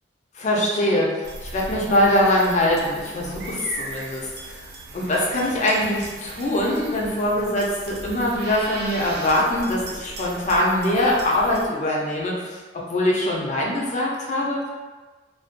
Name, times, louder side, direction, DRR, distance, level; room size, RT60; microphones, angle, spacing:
voice 1, 0.4-4.7 4.9-12.6 12.9-14.7, left 1 dB, 40° left, -3 dB, 0.5 m, -23 dB
sound 1, 1.2-11.7, right 2 dB, 60° right, 0.4 m, -38 dB
2.5 x 2.2 x 2.4 m, 1.3 s
head